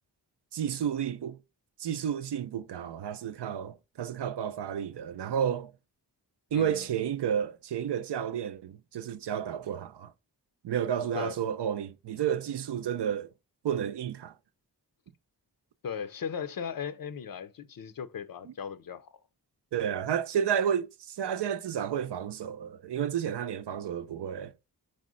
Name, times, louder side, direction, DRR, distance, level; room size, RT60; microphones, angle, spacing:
voice 1, 0.5-1.4 1.8-5.7 6.5-10.1 10.6-13.3 13.6-14.3 19.7-24.5, right 9 dB, 75° right, 0.5 m, -31 dB
voice 2, 6.5-6.9 11.0-11.4 15.8-19.1, left 7 dB, 55° left, 0.6 m, -37 dB
4.9 x 2.1 x 3.7 m
cardioid pair, 50°, 41 cm